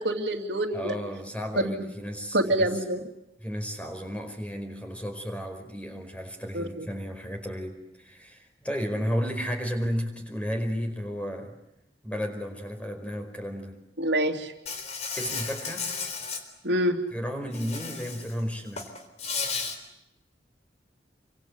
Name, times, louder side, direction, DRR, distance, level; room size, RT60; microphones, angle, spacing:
voice 1, 0.0-0.9 1.5-1.8 2.3-3.0 6.5-6.9 14.0-14.5 16.6-17.0, right 1 dB, 75° right, 3 dB, 3.1 m, -26 dB
voice 2, 0.7-2.7 3.4-11.5 12.0-13.7 15.2-15.9 17.1-18.9, equal, 5° left, 4 dB, 4.9 m, -33 dB
Insect, 14.7-16.4 17.5-18.3 18.7-19.8, left 5 dB, 40° left, 3.9 m, -33 dB
28.5 x 24.5 x 8.2 m, 0.89 s
head